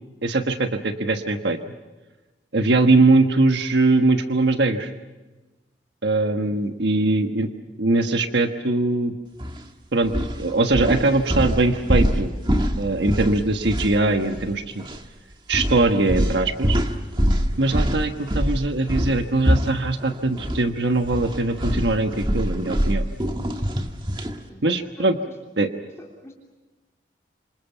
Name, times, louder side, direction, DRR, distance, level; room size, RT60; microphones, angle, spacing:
voice 1, 0.2-1.6 2.5-4.9 6.0-7.5 7.8-9.1 9.9-10.1 10.4-12.3 12.8-14.8 15.5-16.8 17.6-23.0 24.6-25.2 25.6-25.7, right 2 dB, 85° right, 6 dB, 1.4 m, -21 dB
voice 2, 6.4-6.9 24.5-24.6 25.0-25.1 26.0-26.3, equal, 15° left, -2 dB, 3.3 m, -45 dB
sound 1, 9.4-9.6 10.0-14.5 14.8-15.0 15.5-20.6 20.9-24.4, equal, 25° right, 1.6 m, -24 dB
27.0 x 27.0 x 5.8 m, 1.2 s
head